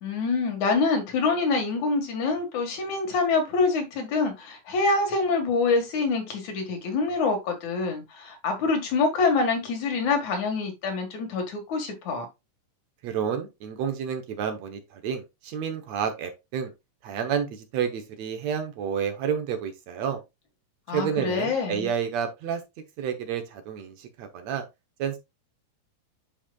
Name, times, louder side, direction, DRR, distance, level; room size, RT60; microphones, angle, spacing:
voice 1, 0.0-12.3 20.9-21.9, left 4 dB, 70° left, 3.1 m, -26 dB
voice 2, 13.0-16.7 17.0-20.2 20.9-22.6 23.0-24.6 25.0-25.2, right 7 dB, 70° right, 2.1 m, -30 dB
10.0 x 4.9 x 2.3 m
omnidirectional pair, 3.5 m